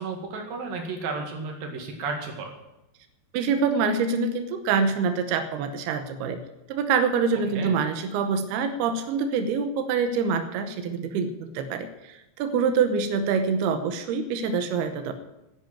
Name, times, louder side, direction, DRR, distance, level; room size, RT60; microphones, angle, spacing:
voice 1, 0.0-2.5 7.5-7.7, right 4 dB, 60° right, 3 dB, 3.7 m, -33 dB
voice 2, 3.3-6.4 6.7-15.1, right 5 dB, 80° right, 8 dB, 2.9 m, -25 dB
10.5 x 10.5 x 8.9 m, 0.95 s
omnidirectional pair, 4.7 m